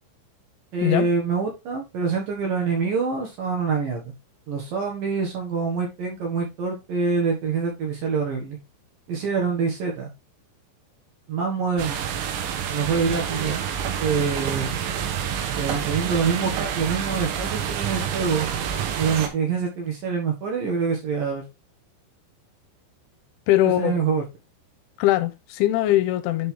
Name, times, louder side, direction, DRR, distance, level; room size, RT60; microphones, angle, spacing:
voice 1, 0.7-4.1 4.5-8.6 9.1-10.1 11.3-12.1 12.7-13.6 14.0-14.8 15.6-18.5 19.0-21.4 23.6-24.2, right 5 dB, 60° right, 2.6 m, -25 dB
sound 1, 11.8-19.3, right 8 dB, 90° right, 3.7 m, -28 dB
voice 2, 23.5-24.0 25.0-26.5, left 14 dB, 85° left, 3.1 m, -21 dB
11.0 x 4.0 x 3.4 m
omnidirectional pair, 5.5 m